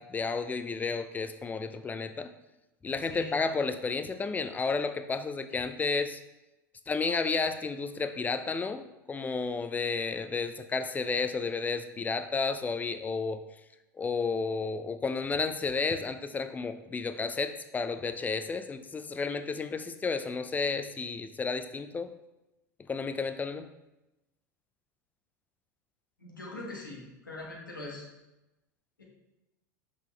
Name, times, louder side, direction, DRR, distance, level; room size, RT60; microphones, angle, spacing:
voice 1, 0.0-2.3 2.8-6.2 6.9-8.8 9.1-13.4 14.0-22.1 22.9-23.7, left 4 dB, 15° left, 10 dB, 0.5 m, -32 dB
voice 2, 3.0-3.6 26.2-28.0 29.0-29.1, left 2 dB, 90° left, -2 dB, 1.6 m, -42 dB
5.8 x 5.2 x 3.3 m, 0.99 s
figure-of-eight pair, 85°, 10 cm